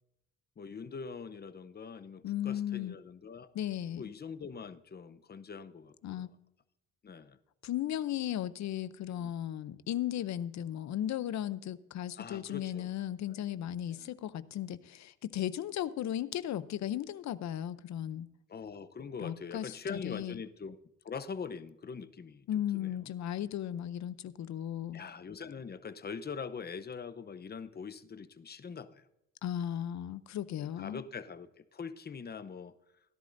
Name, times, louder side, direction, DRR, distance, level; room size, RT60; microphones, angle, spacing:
voice 1, 0.6-3.5 3.9-6.3 7.0-7.4 9.1-9.3 12.2-12.9 13.3-13.4 13.9-14.1 18.5-20.8 21.0-22.5 22.7-23.1 24.9-29.0 30.6-32.7, left 5 dB, 35° left, 11 dB, 0.8 m, -43 dB
voice 2, 2.2-3.0 3.5-4.0 6.0-6.3 7.6-18.3 19.2-20.4 22.5-25.0 29.4-31.0, left 11 dB, 65° left, 15 dB, 0.7 m, -36 dB
17.0 x 11.0 x 2.6 m, 0.87 s
cardioid pair, 90°, 30 cm